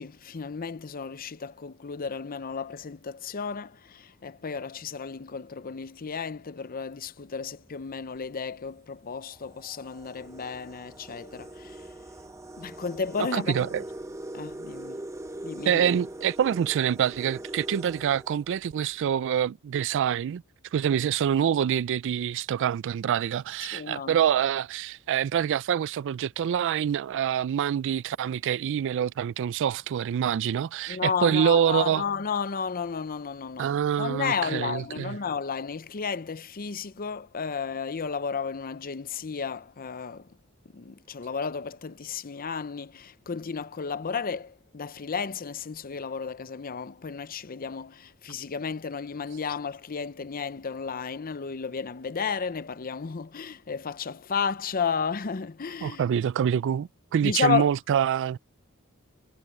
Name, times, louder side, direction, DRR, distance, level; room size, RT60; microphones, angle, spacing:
voice 1, 0.0-11.8 12.6-13.7 14.3-15.0 15.4-16.0 23.7-24.2 30.9-40.3 40.7-56.0 57.2-57.7, left 6 dB, 40° left, 0.6 m, -33 dB
sound 1, 7.6-7.9 8.7-8.8 9.2-19.0, right 1 dB, 15° right, 1.0 m, -41 dB
voice 2, 13.3-13.8 15.7-20.4 20.7-32.0 33.6-35.2 55.8-58.4, right 9 dB, 60° right, 0.3 m, -26 dB
head